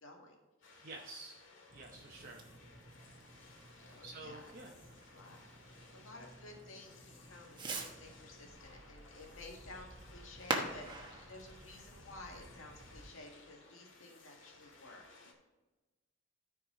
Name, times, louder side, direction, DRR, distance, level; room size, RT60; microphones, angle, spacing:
voice 1, 0.0-0.9 3.8-4.8 5.1-5.4 5.7-15.0, left 2 dB, 85° left, 0 dB, 1.8 m, -54 dB
sound 1, 0.6-15.3, left 3 dB, 65° left, 1.8 m, -60 dB
voice 2, 0.8-1.4 1.7-2.5 4.0-4.7, right 3 dB, 45° right, -1 dB, 0.8 m, -49 dB
Fireworks, 1.7-13.1, right 2 dB, 20° right, 1.1 m, -46 dB
14.0 x 4.7 x 3.8 m, 1.2 s
head